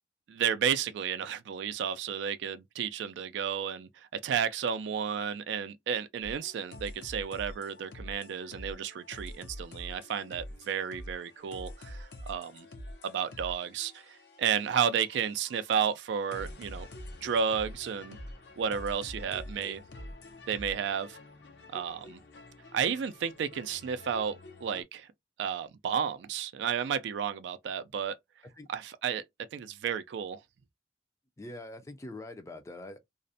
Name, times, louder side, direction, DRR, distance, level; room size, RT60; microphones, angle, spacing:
voice 1, 0.3-12.7 13.0-16.9 17.2-18.2 18.6-19.8 20.5-21.2 21.7-22.2 22.7-25.1 25.4-28.2 28.7-29.2 29.5-30.4, right 7 dB, 80° right, 0.3 m, -32 dB
sound 1, 6.2-24.8, left 1 dB, 70° left, 0.5 m, -47 dB
voice 2, 31.4-33.0, left 1 dB, 15° left, 0.4 m, -43 dB
2.4 x 2.0 x 2.6 m
head